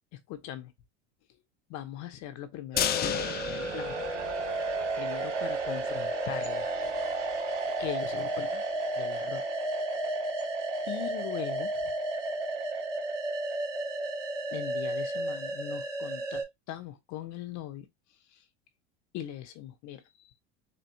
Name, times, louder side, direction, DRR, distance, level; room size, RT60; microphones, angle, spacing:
voice 1, 0.3-0.7 1.7-3.9 5.0-6.7 7.8-8.6 9.0-9.4 10.9-11.7 14.5-17.9 18.3-18.4 19.1-20.0, left 12 dB, 50° left, 0.9 m, -40 dB
sound 1, 2.7-16.4, right 2 dB, 85° right, 2.7 m, -32 dB
sound 2, 2.8-4.9 5.2-5.3 5.7-5.8, left 10 dB, 25° left, 0.4 m, -32 dB
4.5 x 2.9 x 2.7 m
hypercardioid pair, 95°, 36 cm